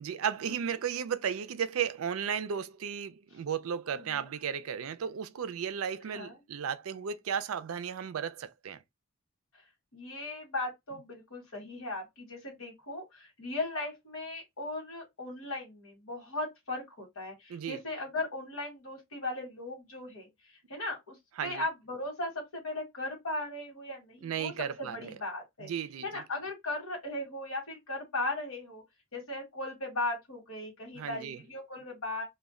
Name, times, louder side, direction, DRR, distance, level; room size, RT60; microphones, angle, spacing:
voice 1, 0.0-8.8 17.5-17.8 21.4-21.6 24.2-25.2 25.6-26.2 30.9-31.4, right 8 dB, 85° right, 0.4 m, -34 dB
voice 2, 3.9-4.3 6.1-6.3 9.9-21.2 21.4-24.5 24.8-25.7 26.0-28.8 29.1-32.2, left 2 dB, 90° left, 1.1 m, -37 dB
2.2 x 2.1 x 3.5 m
head